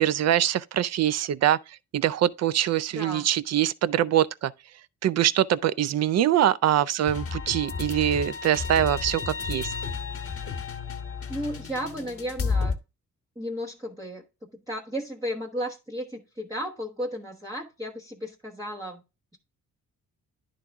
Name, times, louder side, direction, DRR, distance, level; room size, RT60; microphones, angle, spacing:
voice 1, 0.0-1.6 1.9-4.5 5.0-9.7, right 11 dB, 50° right, 0.4 m, -23 dB
voice 2, 2.9-3.3 11.3-12.7 13.4-14.2 14.7-19.0, equal, 10° right, 1.1 m, -34 dB
sound 1, 7.1-12.8, left 5 dB, 45° left, 1.3 m, -32 dB
11.0 x 3.7 x 3.4 m
cardioid pair, 120°, 33 cm